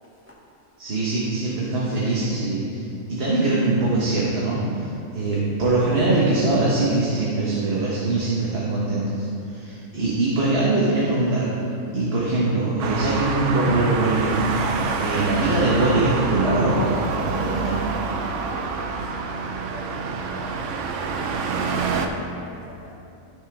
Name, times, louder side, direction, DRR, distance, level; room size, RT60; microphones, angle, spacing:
voice 1, 0.8-2.8 3.1-11.5 11.9-14.4 15.0-17.8, right 2 dB, 45° right, -7 dB, 1.4 m, -22 dB
Traffic noise roadway noise, 12.8-22.1, right 4 dB, 65° right, 0.9 m, -27 dB
voice 2, 18.7-22.9, right 1 dB, 10° right, -7 dB, 1.8 m, -44 dB
14.0 x 5.1 x 3.5 m, 2.7 s
omnidirectional pair, 1.4 m